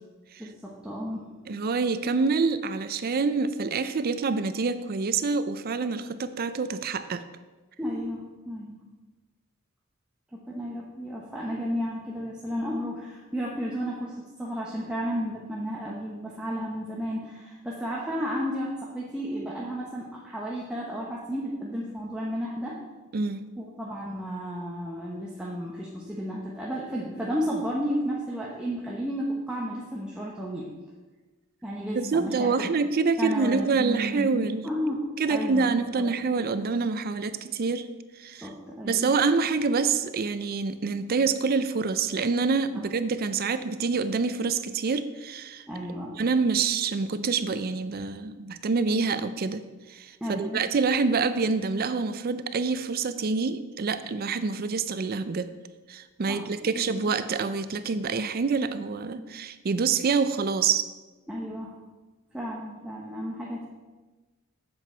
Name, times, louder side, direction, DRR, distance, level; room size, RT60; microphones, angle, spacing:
voice 1, 0.4-1.3 7.8-8.8 10.3-22.8 23.6-30.7 31.6-32.7 33.2-35.7 38.4-39.1 45.7-46.2 50.2-50.6 56.3-56.4 56.7-57.1 59.2-59.4 61.3-61.7 62.3-63.7, equal, 5° right, -5 dB, 1.0 m, -33 dB
voice 2, 1.5-7.2 23.1-23.4 32.0-34.7 35.2-37.9 38.2-38.5 38.8-45.6 46.2-49.6 49.9-55.5 55.9-60.9, right 4 dB, 45° right, 12 dB, 0.5 m, -26 dB
7.9 x 7.7 x 4.4 m, 1.3 s
head